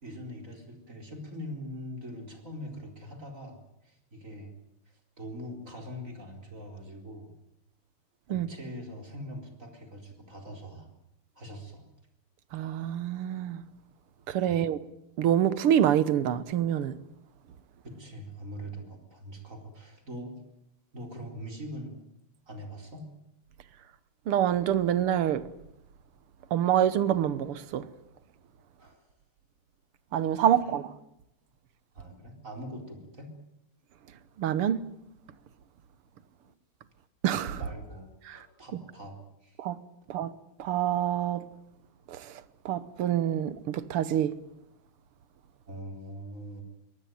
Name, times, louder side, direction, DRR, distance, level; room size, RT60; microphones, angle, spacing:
voice 1, 0.0-3.6 3.8-4.5 4.9-7.3 8.3-10.9 11.3-11.9 14.5-14.6 17.8-20.4 20.9-22.0 22.5-23.1 28.8-29.0 30.6-30.8 31.9-33.3 37.5-39.6 45.7-46.6, equal, 35° right, 4.6 m, -42 dB
voice 2, 12.5-13.6 14.3-14.8 15.2-16.9 24.3-25.4 26.5-27.9 30.1-30.9 34.4-34.8 37.2-37.6 38.3-38.4 39.6-39.8 40.1-40.3 40.6-41.4 42.1-42.3 42.7-44.3, right 10 dB, 85° right, 2.1 m, -26 dB
23.0 x 19.0 x 9.4 m
omnidirectional pair, 2.4 m